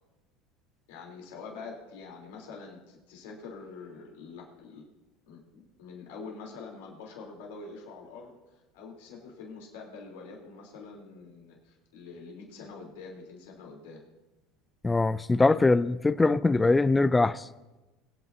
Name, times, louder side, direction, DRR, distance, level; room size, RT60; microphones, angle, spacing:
voice 1, 0.9-4.8 5.3-8.3 8.7-14.0, left 4 dB, 85° left, 3.5 m, -45 dB
voice 2, 14.8-17.5, left 3 dB, 15° left, 0.4 m, -22 dB
23.5 x 9.2 x 2.8 m
supercardioid pair, 115°, 0 cm